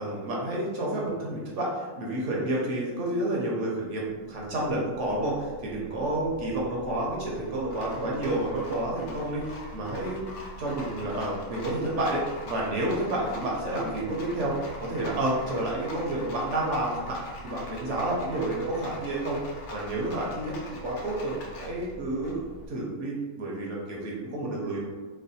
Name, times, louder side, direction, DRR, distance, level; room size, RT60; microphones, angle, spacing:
voice 1, 0.0-10.3 10.6-19.4 19.7-20.6 20.8-22.4 22.7-24.9, right 1 dB, 60° right, -3 dB, 0.9 m, -30 dB
Rattle, 4.1-22.7, equal, 80° left, 1.2 m, -43 dB
3.2 x 2.0 x 4.0 m, 1.4 s
omnidirectional pair, 1.5 m